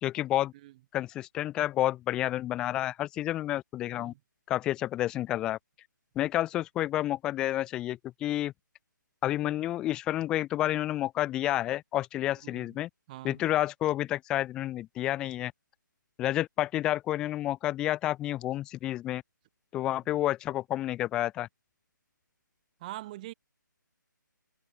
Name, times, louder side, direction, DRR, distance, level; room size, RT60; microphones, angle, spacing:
voice 1, 0.0-0.5 0.9-4.1 4.5-5.6 6.2-8.5 9.2-12.9 13.2-15.5 16.2-19.2 19.7-21.5, left 14 dB, 5° left, 0.5 m, -30 dB
voice 2, 12.4-12.8 13.1-13.4 22.8-23.3, right 16 dB, 25° right, 4.5 m, -43 dB
hypercardioid pair, 165°, 11 cm